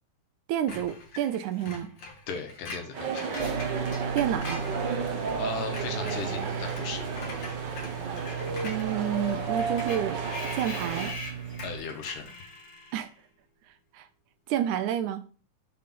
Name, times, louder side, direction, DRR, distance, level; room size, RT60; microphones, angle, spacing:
voice 1, 0.5-1.9 4.1-4.7 8.6-10.2 10.5-11.1 12.9-13.1 13.9-14.1 14.5-15.2, right 10 dB, 80° right, 2.0 m, -29 dB
Screech, 0.7-5.4 5.6-13.1, left 2 dB, 60° left, 2.5 m, -43 dB
voice 2, 2.3-3.7 5.4-7.1 11.6-12.4, left 5 dB, 85° left, 2.8 m, -37 dB
sound 1, 2.9-11.1, right 4 dB, 60° right, 1.2 m, -33 dB
sound 2, 3.4-11.8, right 7 dB, 35° right, 2.0 m, -36 dB
6.6 x 3.7 x 5.8 m
omnidirectional pair, 3.6 m